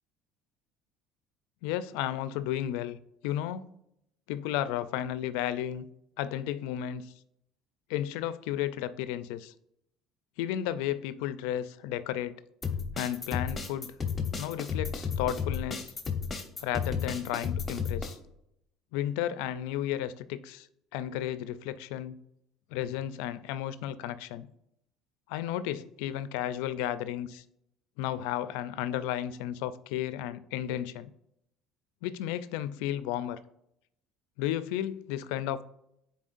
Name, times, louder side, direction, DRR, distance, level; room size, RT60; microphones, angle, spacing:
voice 1, 1.6-3.0 3.2-3.7 4.3-5.8 6.2-7.1 7.9-9.5 10.4-12.4 13.0-13.9 14.4-15.9 16.6-18.2 18.9-20.7 20.9-22.2 22.7-24.5 25.3-27.4 28.0-31.1 32.0-33.4 34.4-35.6, left 11 dB, 85° left, 0.4 m, -33 dB
sound 1, 12.6-18.1, left 6 dB, 20° left, 1.0 m, -33 dB
9.9 x 4.1 x 2.5 m
supercardioid pair, 110°, 0 cm